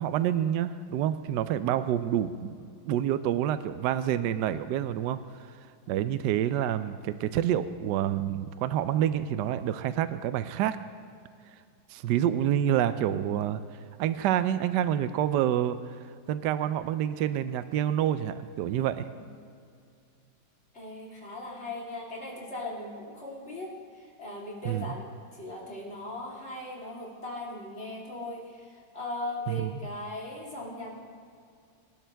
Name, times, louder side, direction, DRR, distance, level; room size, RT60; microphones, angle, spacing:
voice 1, 0.0-5.2 5.9-10.8 11.9-13.6 14.0-16.0 16.3-19.1 24.6-24.8 29.5-29.7, right 10 dB, 70° right, 12 dB, 1.1 m, -28 dB
voice 2, 20.7-30.9, left 2 dB, 30° left, -4 dB, 3.5 m, -39 dB
25.0 x 12.0 x 3.4 m, 2.4 s
omnidirectional pair, 2.2 m